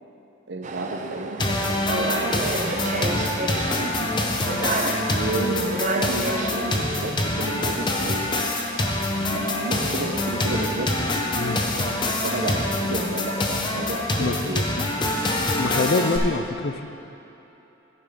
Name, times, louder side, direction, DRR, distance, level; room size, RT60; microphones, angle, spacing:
voice 1, 0.5-3.3 3.8-4.1 5.1-8.3 9.3-10.9 12.2-14.6, right 2 dB, 65° right, 3 dB, 0.8 m, -32 dB
sound 1, 0.6-11.1, right 2 dB, 40° right, 0.5 m, -32 dB
sound 2, 1.4-16.2, left 2 dB, 25° left, 0.8 m, -25 dB
voice 2, 11.4-11.7 14.2-14.4 14.8-14.9 15.6-16.9, left 3 dB, 55° left, 7 dB, 0.5 m, -25 dB
10.0 x 10.0 x 3.7 m, 3.0 s
head